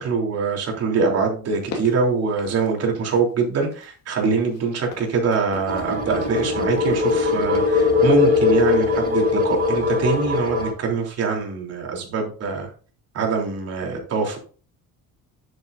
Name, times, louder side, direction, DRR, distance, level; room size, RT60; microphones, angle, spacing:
voice 1, 0.0-12.7 13.1-14.5, right 4 dB, 45° right, 0 dB, 3.5 m, -23 dB
sound 1, 1.5-3.4 3.7-9.3 9.5-9.8, left 4 dB, 45° left, 2.7 m, -41 dB
sound 2, 5.7-10.7, left 4 dB, 25° right, 4.2 m, -21 dB
10.5 x 8.7 x 2.7 m, 0.39 s
cardioid pair, 160°, 35 cm